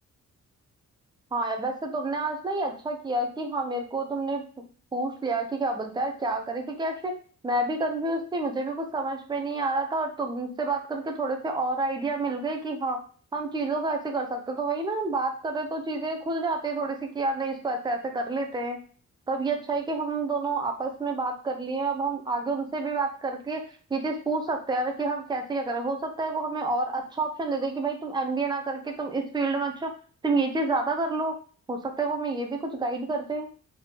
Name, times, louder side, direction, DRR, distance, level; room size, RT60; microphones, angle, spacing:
voice 1, 1.3-4.4 4.9-7.1 7.4-13.0 13.3-18.8 19.3-23.6 23.9-29.9 30.2-31.3 31.7-33.5, right 3 dB, 15° right, 3 dB, 0.5 m, -29 dB
4.2 x 3.6 x 2.8 m, 0.41 s
wide cardioid pair, 170°, 30 cm